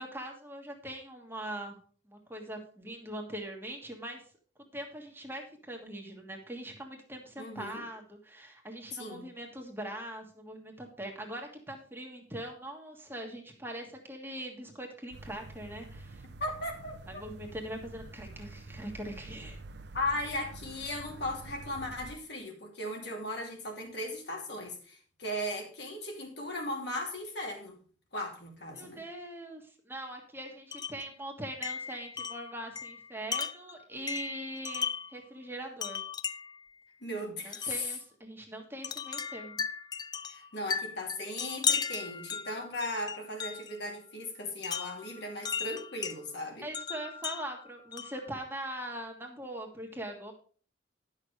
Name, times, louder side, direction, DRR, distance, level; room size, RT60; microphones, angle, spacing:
voice 1, 0.0-1.8 2.1-4.2 4.7-16.2 17.1-19.6 28.7-36.0 37.4-39.6 46.6-50.3, right 1 dB, 10° right, 1 dB, 1.6 m, -42 dB
voice 2, 7.4-7.8 9.0-9.3 16.4-17.2 19.9-27.8 28.1-29.0 37.0-38.0 40.3-46.7, left 1 dB, 65° left, 1 dB, 2.6 m, -37 dB
sound 1, 15.1-22.2, right 2 dB, 65° right, 0.7 m, -47 dB
Wind chime, 30.7-31.1 31.6-35.2 35.8-36.6 37.5-37.8 38.8-43.8 44.6-46.2 46.7-48.3, left 6 dB, 20° left, 0.3 m, -36 dB
10.5 x 6.5 x 4.8 m, 0.42 s
head